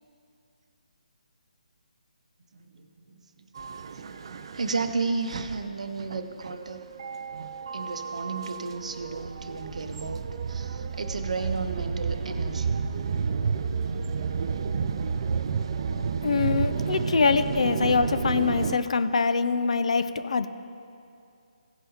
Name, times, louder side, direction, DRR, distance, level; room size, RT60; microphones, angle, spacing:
voice 1, 2.5-3.5 4.5-6.9 7.7-12.7, right 4 dB, 55° right, 7 dB, 0.8 m, -33 dB
sound 1, 3.6-18.8, right 5 dB, 40° right, 0.4 m, -31 dB
voice 2, 16.2-20.5, left 5 dB, 50° left, 11 dB, 0.4 m, -24 dB
16.5 x 5.5 x 4.2 m, 2.5 s
figure-of-eight pair, 145°, 4 cm